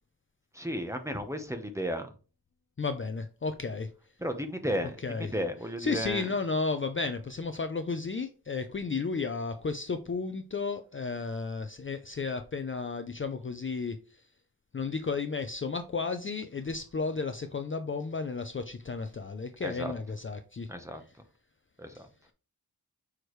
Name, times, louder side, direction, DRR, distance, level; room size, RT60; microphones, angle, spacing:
voice 1, 0.5-2.1 4.2-4.9 5.2-6.3 19.6-19.9 20.7-21.0 21.8-22.1, equal, 10° right, 1.0 m, -33 dB
voice 2, 2.8-3.9 5.0-5.3 5.8-14.2 14.7-20.7, left 4 dB, 35° left, 0.5 m, -33 dB
6.2 x 4.8 x 3.2 m
wide cardioid pair, 100°, 38 cm